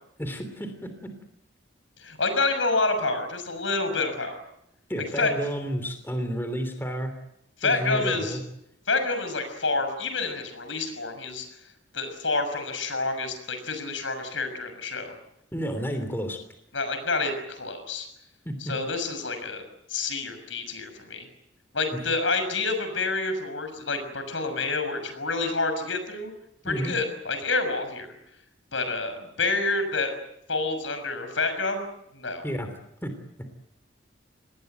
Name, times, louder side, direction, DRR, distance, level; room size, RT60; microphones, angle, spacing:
voice 1, 0.2-1.1 4.9-7.1 7.6-8.4 15.5-16.4 18.4-18.7 26.6-27.0 32.4-32.7 33.0-33.1, equal, 10° left, 7 dB, 3.1 m, -31 dB
voice 2, 2.0-4.4 5.2-5.3 7.6-8.4 8.9-11.5 11.9-15.1 16.7-18.1 18.6-19.6 19.9-21.3 21.7-26.3 26.6-28.1 28.7-30.1 30.5-31.9 32.1-32.4, left 3 dB, 75° left, 8 dB, 6.4 m, -28 dB
27.5 x 20.5 x 8.1 m, 0.80 s
head